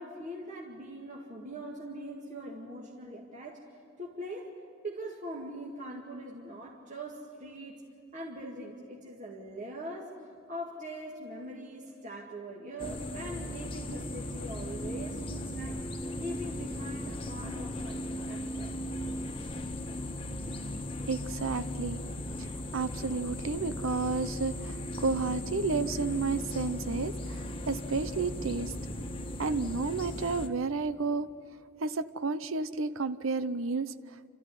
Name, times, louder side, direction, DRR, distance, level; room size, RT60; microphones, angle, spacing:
voice 1, 0.0-3.6 4.0-4.5 4.8-7.8 8.1-10.2 10.5-18.0 18.3-18.8, right 1 dB, 40° right, -3 dB, 2.1 m, -42 dB
sound 1, 12.8-30.5, left 1 dB, 25° left, 1.3 m, -37 dB
voice 2, 21.1-22.0 22.4-28.7 29.4-31.3 31.8-33.9, right 4 dB, 85° right, 13 dB, 0.8 m, -31 dB
29.5 x 14.0 x 9.8 m, 2.5 s
head